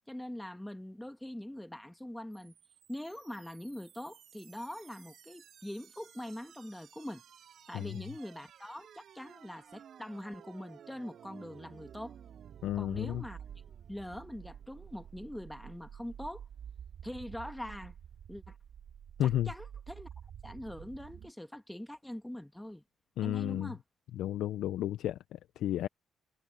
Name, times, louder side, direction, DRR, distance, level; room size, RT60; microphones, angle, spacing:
voice 1, 0.1-2.5 2.9-7.2 7.7-12.1 12.7-13.4 13.9-16.4 17.0-17.9 18.3-18.6 19.2-20.1 20.4-22.8 23.2-23.8, left 1 dB, 5° left, 1.5 m, -43 dB
sound 1, 2.3-21.3, right 8 dB, 65° right, 2.4 m, -51 dB
voice 2, 12.6-13.2 19.2-19.5 23.2-23.7 24.2-25.9, left 12 dB, 80° left, 0.6 m, -32 dB
cardioid pair, 90°, 0 cm